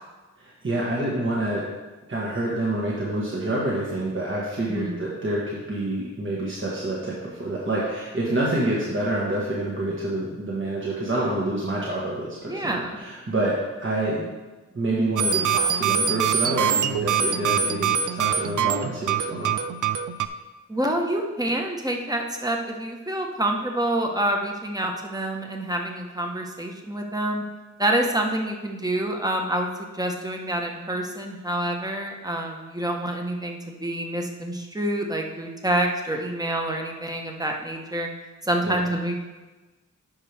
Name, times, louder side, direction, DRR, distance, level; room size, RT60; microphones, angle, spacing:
voice 1, 0.4-1.7 2.1-14.3 14.7-19.5 38.6-38.7, right 1 dB, 40° right, -5 dB, 1.6 m, -27 dB
voice 2, 12.5-13.0 20.7-27.4 27.8-29.7 29.9-38.1 38.4-39.2, right 1 dB, 10° right, 2 dB, 1.2 m, -27 dB
sound 1, 15.2-20.3, right 7 dB, 70° right, 0.5 m, -24 dB
10.5 x 5.4 x 3.5 m, 1.2 s
cardioid pair, 60°, 32 cm